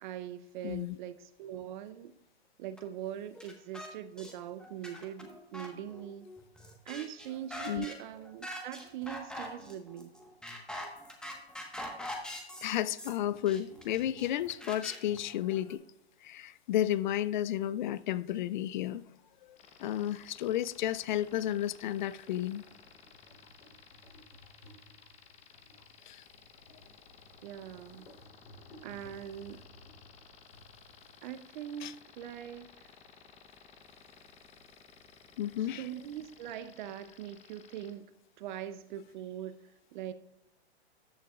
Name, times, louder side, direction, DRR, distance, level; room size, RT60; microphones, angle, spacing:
voice 1, 0.0-2.1 2.6-6.3 6.9-10.2 27.4-28.1 28.8-29.6 31.2-32.9 35.7-38.1 38.4-39.6 39.9-40.1, right 10 dB, 45° right, 0.6 m, -42 dB
voice 2, 0.6-1.0 7.7-7.9 12.6-15.8 16.2-19.0 19.8-22.6 26.1-26.2 31.8-31.9 35.4-35.8, left 12 dB, 45° left, 0.4 m, -32 dB
sound 1, 2.8-2.9 3.4-3.9 4.2-4.3 4.6-15.7, left 1 dB, ahead, 1.3 m, -44 dB
sound 2, 19.0-37.5, equal, 85° left, 3.4 m, -60 dB
sound 3, 19.6-37.9, left 6 dB, 20° left, 0.9 m, -57 dB
14.0 x 8.3 x 2.4 m
hypercardioid pair, 125°, 33 cm